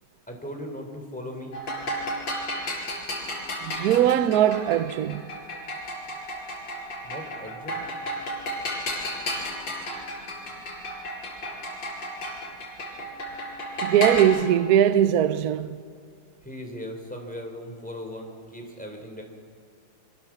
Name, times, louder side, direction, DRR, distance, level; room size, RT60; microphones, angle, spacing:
voice 1, 0.3-1.5 7.0-7.8 16.4-19.2, equal, 5° left, 3.2 m, -38 dB
sound 1, 1.5-14.3, equal, 55° left, 5.8 m, -33 dB
voice 2, 3.6-5.2 13.8-15.8, right 10 dB, 65° right, 0.9 m, -21 dB
24.5 x 16.0 x 7.2 m
omnidirectional pair, 2.4 m